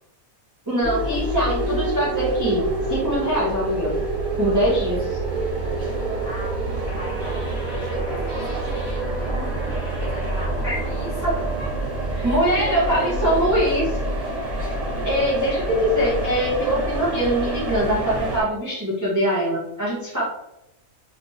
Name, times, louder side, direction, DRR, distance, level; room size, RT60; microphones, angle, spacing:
voice 1, 0.7-3.9 4.4-5.2 10.6-10.8 12.2-13.9 15.0-20.2, equal, 20° right, -8 dB, 0.6 m, -22 dB
sound 1, 0.8-18.4, right 1 dB, 45° right, 1.4 m, -27 dB
sound 2, 3.7-12.7, right 8 dB, 75° left, 1.3 m, -33 dB
voice 2, 5.6-11.2 11.6-11.7 12.1-13.8 14.5-14.6 15.0-15.1, left 2 dB, 55° left, -3 dB, 1.3 m, -36 dB
sound 3, 6.9-11.8, left 1 dB, 40° left, 1.7 m, -39 dB
3.3 x 2.9 x 2.7 m, 0.88 s
omnidirectional pair, 1.4 m